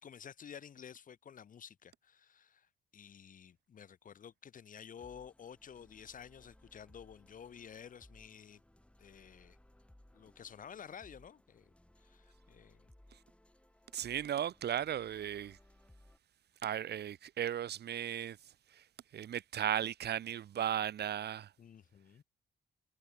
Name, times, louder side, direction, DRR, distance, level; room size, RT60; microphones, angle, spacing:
voice 1, 0.0-8.6 9.0-9.6 10.1-11.7 12.0-12.9 21.6-22.2, left 8 dB, 45° left, 0.7 m, -52 dB
sound 1, 5.0-16.2, left 1 dB, 5° left, 5.3 m, -63 dB
voice 2, 13.9-15.6 16.6-18.9 19.1-21.5, right 10 dB, 55° right, 0.9 m, -36 dB
cardioid pair, 90°, 20 cm